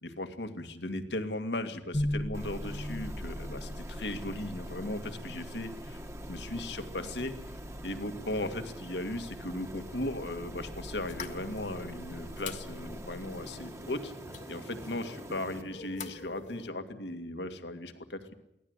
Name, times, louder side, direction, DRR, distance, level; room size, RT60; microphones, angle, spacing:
voice 1, 0.0-6.0 6.3-7.3 7.8-14.1 14.5-18.3, left 1 dB, 70° left, 8 dB, 2.2 m, -37 dB
sound 1, 1.9-14.0, left 1 dB, 25° left, 1.1 m, -41 dB
sound 2, 2.3-15.6, right 1 dB, 15° right, 1.7 m, -46 dB
sound 3, 11.1-16.7, left 4 dB, 45° left, 2.0 m, -46 dB
24.0 x 17.5 x 8.1 m, 0.83 s
head